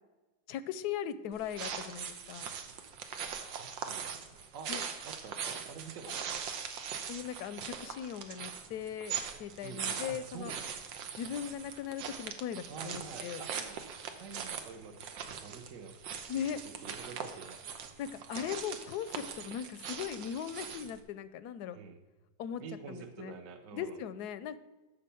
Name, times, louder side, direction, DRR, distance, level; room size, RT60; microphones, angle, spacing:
voice 1, 0.5-2.5 4.7-4.8 7.1-10.5 11.2-13.4 16.3-16.6 18.0-21.8 22.4-22.6 22.9-23.3 23.7-24.6, left 9 dB, 70° left, 13 dB, 1.0 m, -39 dB
sound 1, 1.3-21.0, right 7 dB, 90° right, 1.6 m, -41 dB
voice 2, 3.3-4.2 4.5-4.8 5.0-6.4 9.6-10.7 12.7-15.0 15.3-15.9 16.4-16.5 16.8-17.6 21.7-22.0 22.6-24.0, right 5 dB, 55° right, 6 dB, 1.0 m, -47 dB
12.0 x 4.2 x 6.9 m, 1.2 s
omnidirectional pair, 2.0 m